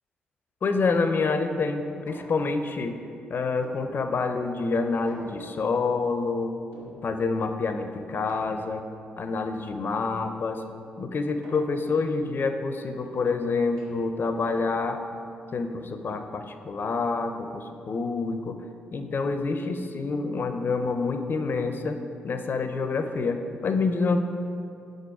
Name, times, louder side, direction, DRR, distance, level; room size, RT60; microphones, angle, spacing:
voice 1, 0.6-3.0 3.3-6.6 7.0-8.8 9.2-10.6 11.0-15.0 15.5-18.6 18.9-22.0 22.2-24.3, left 4 dB, 45° left, 7 dB, 0.4 m, -27 dB
sound 1, 0.7-1.3 2.1-2.7 3.6-4.4 5.1-5.9 6.7-7.4 8.3-9.0 9.9-10.6 11.4-12.2 13.1-15.1, right 2 dB, 70° right, 1.2 m, -49 dB
5.2 x 3.9 x 4.8 m, 2.5 s
hypercardioid pair, 40°, 5 cm